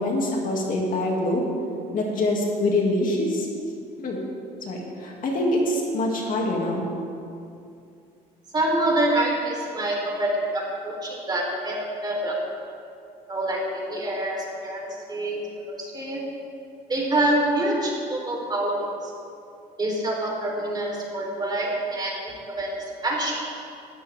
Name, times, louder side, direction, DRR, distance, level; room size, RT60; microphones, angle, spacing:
voice 1, 0.0-1.5 1.9-3.5 4.0-4.2 4.6-6.9, left 1 dB, 55° left, -1 dB, 2.6 m, -25 dB
voice 2, 8.5-11.8 12.0-12.4 13.3-14.8 15.1-15.4 15.7-16.2 16.9-19.1 19.8-22.7 23.0-23.3, right 1 dB, 25° right, -2 dB, 3.9 m, -26 dB
18.0 x 13.5 x 3.7 m, 2.6 s
cardioid pair, 110°, 17 cm